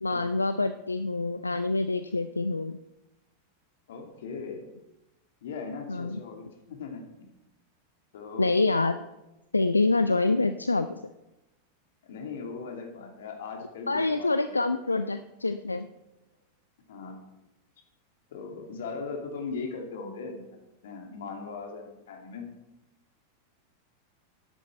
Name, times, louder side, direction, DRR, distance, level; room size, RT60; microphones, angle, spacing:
voice 1, 0.0-2.8 5.9-6.2 8.4-9.0 9.5-11.0 13.9-15.9, left 3 dB, 80° left, 11 dB, 0.4 m, -26 dB
voice 2, 3.9-4.6 5.4-7.0 8.1-8.5 10.2-10.3 12.0-15.2 16.9-17.2 18.3-20.4 20.8-22.4, left 4 dB, 60° left, 3 dB, 2.3 m, -39 dB
12.5 x 10.5 x 4.4 m, 0.97 s
figure-of-eight pair, 90°, 0 cm